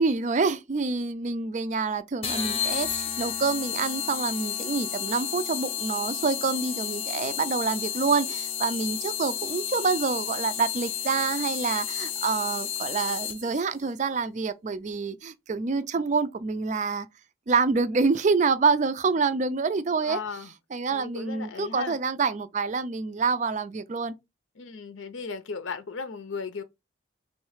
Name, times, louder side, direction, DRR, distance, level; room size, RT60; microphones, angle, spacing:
voice 1, 0.0-17.1 17.5-20.2 20.7-24.1, right 4 dB, 35° right, 0.4 m, -27 dB
sound 1, 2.2-13.6, left 9 dB, 30° left, 0.7 m, -32 dB
voice 2, 20.0-20.5 20.9-22.0 24.6-26.6, left 4 dB, 75° left, 0.6 m, -36 dB
3.2 x 3.1 x 4.7 m
head